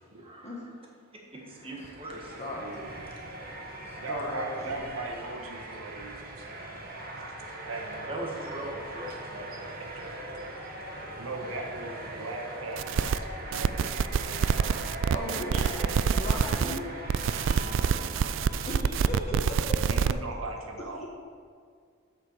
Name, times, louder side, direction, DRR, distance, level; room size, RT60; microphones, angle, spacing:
voice 1, 0.2-0.6 1.3-2.3 8.1-9.3 9.6-9.7 16.1-16.2, right 1 dB, 25° right, -1 dB, 1.6 m, -39 dB
sound 1, 1.4-19.8, right 2 dB, 45° right, 1.3 m, -41 dB
voice 2, 2.6-3.0 4.0-7.1 7.4-8.7 9.3-9.4 9.9-10.0 11.2-15.7 16.6-16.8 17.4-18.5 19.8-21.1, right 2 dB, 80° right, 1 dB, 1.2 m, -40 dB
voice 3, 3.9-4.8 15.1-15.8 16.1-16.8 18.6-18.8 19.1-19.9 21.0-21.1, left 1 dB, 35° left, -3 dB, 1.5 m, -36 dB
sound 2, 12.8-13.2 13.5-16.8 17.1-20.1, right 6 dB, 60° right, 0.3 m, -26 dB
8.1 x 6.8 x 6.4 m, 2.2 s
head